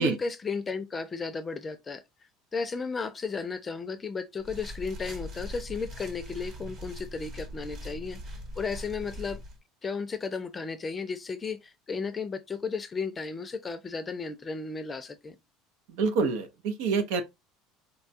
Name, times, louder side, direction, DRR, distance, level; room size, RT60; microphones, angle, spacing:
voice 1, 0.0-2.0 2.5-9.4 9.8-15.4, left 4 dB, 25° left, 0.5 m, -34 dB
sound 1, 4.4-9.6, equal, 50° right, 1.1 m, -41 dB
voice 2, 15.9-17.2, right 4 dB, 75° right, 0.6 m, -27 dB
4.1 x 2.3 x 2.6 m
supercardioid pair, 115°, 0 cm